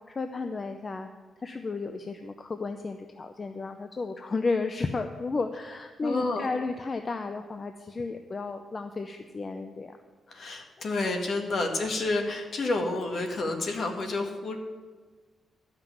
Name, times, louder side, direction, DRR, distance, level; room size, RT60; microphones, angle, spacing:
voice 1, 0.1-1.1 1.4-10.0 11.5-11.7, left 3 dB, 30° left, 7 dB, 0.6 m, -33 dB
voice 2, 6.0-6.5 10.3-14.6, left 2 dB, 50° left, 3 dB, 1.8 m, -29 dB
13.0 x 5.9 x 9.2 m, 1.4 s
wide cardioid pair, 150°, 0 cm